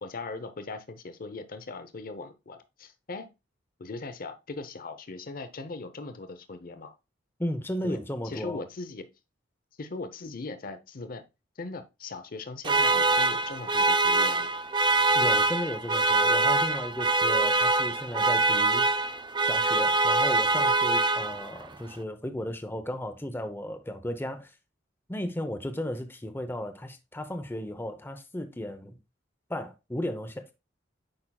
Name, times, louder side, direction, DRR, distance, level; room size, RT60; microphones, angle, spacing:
voice 1, 0.0-3.3 3.8-6.9 7.8-8.0 8.2-9.1 9.8-11.2 11.6-14.5, left 3 dB, 50° left, 0.7 m, -39 dB
voice 2, 7.4-8.6 15.1-18.9 19.4-24.6 25.1-29.0 29.5-30.5, left 1 dB, 10° left, 0.7 m, -34 dB
sound 1, 12.6-21.7, right 3 dB, 25° right, 0.4 m, -24 dB
8.8 x 5.6 x 2.3 m
head